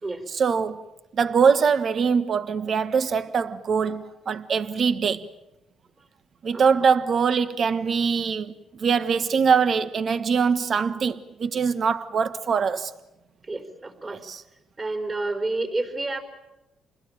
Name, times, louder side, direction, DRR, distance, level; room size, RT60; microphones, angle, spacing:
voice 1, 0.3-0.8 1.1-5.3 6.4-8.5 8.8-12.9 14.1-14.4, right 6 dB, 50° right, 1.4 m, -23 dB
voice 2, 13.5-14.2 14.8-16.2, right 2 dB, 30° right, 4.6 m, -29 dB
28.0 x 21.0 x 9.0 m
cardioid pair, 90°, 0 cm